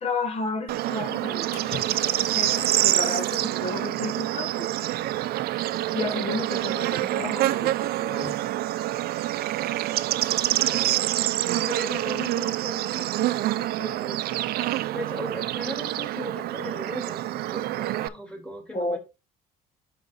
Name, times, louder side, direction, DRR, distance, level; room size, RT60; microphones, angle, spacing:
voice 1, 0.0-1.8 2.1-4.7 5.9-8.4 18.7-19.0, left 3 dB, 40° left, 1.0 m, -32 dB
Bird / Insect, 0.7-18.1, right 15 dB, 65° right, 0.5 m, -26 dB
Splash splatter, 1.5-3.6 4.2-4.4 5.0-5.1, left 7 dB, 65° left, 1.0 m, -41 dB
voice 2, 9.6-14.5 14.9-19.0, left 1 dB, 5° left, 2.9 m, -39 dB
5.9 x 5.1 x 3.7 m
cardioid pair, 110°, 17 cm